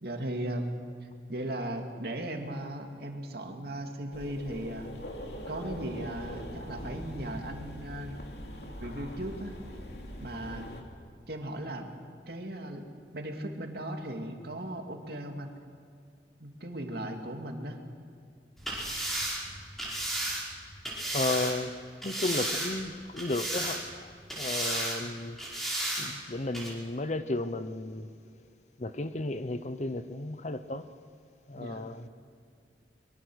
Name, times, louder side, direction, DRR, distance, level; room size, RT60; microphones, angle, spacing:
voice 1, 0.0-4.9 5.5-8.2 8.8-9.5 10.2-10.7 11.3-11.9 12.3-12.8 13.1-15.5 16.4-17.8 25.0-25.1 31.6-31.9, right 1 dB, 60° right, 2.6 m, -37 dB
sound 1, 4.1-10.8, equal, 65° left, 2.9 m, -42 dB
sound 2, 18.6-21.6 22.0-22.9 23.2-24.0 24.3-25.0 25.4-26.1 26.5-26.7, right 1 dB, ahead, 5.1 m, -33 dB
voice 2, 21.1-21.8 22.0-25.4 26.0-28.1 28.8-30.9 31.5-32.1, left 2 dB, 40° left, 0.9 m, -34 dB
23.5 x 23.0 x 6.4 m
head